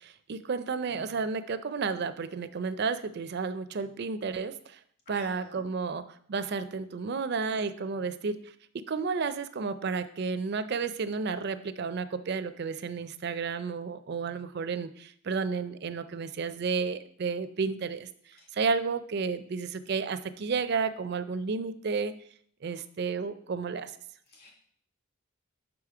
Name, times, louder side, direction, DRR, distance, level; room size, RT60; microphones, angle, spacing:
voice 1, 0.0-4.5 5.1-6.0 6.3-8.4 8.9-18.1 18.5-22.1 22.6-23.9, right 5 dB, 50° right, 12 dB, 0.4 m, -32 dB
voice 2, 5.1-5.6 18.4-18.5 24.3-24.5, equal, 50° left, -1 dB, 2.2 m, -50 dB
6.0 x 5.0 x 4.8 m, 0.62 s
head